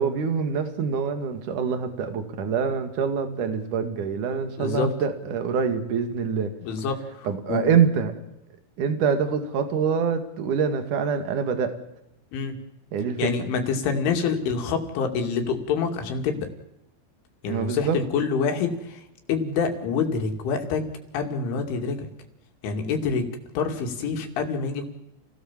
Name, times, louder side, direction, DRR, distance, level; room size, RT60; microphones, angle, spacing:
voice 1, 0.0-6.5 7.2-8.1 8.8-11.8 12.9-13.3 17.5-18.0, right 6 dB, 50° right, 8 dB, 3.1 m, -25 dB
voice 2, 4.6-4.9 6.6-7.7 12.3-12.6 13.2-16.5 17.4-19.0 19.3-20.9 21.1-22.1 22.6-23.3 23.5-24.8, left 5 dB, 90° left, 4 dB, 5.0 m, -26 dB
29.5 x 17.5 x 7.5 m, 0.86 s
omnidirectional pair, 5.4 m